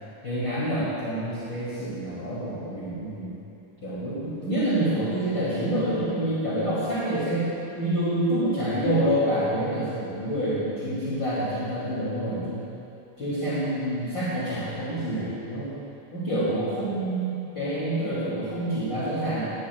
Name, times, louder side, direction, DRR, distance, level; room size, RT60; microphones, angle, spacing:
voice 1, 0.2-3.3 3.8-7.5 7.8-12.6 13.2-15.7 16.1-19.5, right 1 dB, 35° left, -11 dB, 3.0 m, -27 dB
18.5 x 16.5 x 2.3 m, 2.7 s
omnidirectional pair, 4.0 m